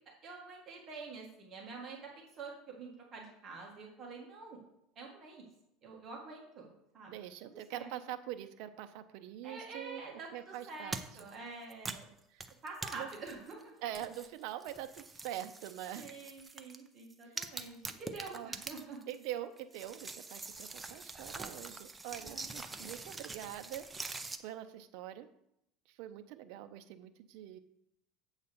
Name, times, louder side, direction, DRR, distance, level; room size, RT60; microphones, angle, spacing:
voice 1, 0.2-4.6 4.9-5.5 5.8-6.7 6.9-7.1 7.7-7.9 9.4-12.1 12.6-13.7 15.9-19.0 22.0-22.4, right 4 dB, 30° right, -1 dB, 1.7 m, -47 dB
voice 2, 7.1-10.0 10.3-11.0 12.3-12.4 12.9-13.1 13.8-16.1 17.3-17.4 18.3-18.5 19.1-24.1 24.4-25.3 25.9-27.6, right 12 dB, 60° right, 8 dB, 0.6 m, -44 dB
sound 1, 10.9-11.3 11.7-13.6 13.9-16.8 17.1-19.3 19.6-24.4, right 3 dB, 10° right, 0.5 m, -44 dB
7.9 x 4.0 x 6.8 m, 0.79 s
cardioid pair, 160°, 0 cm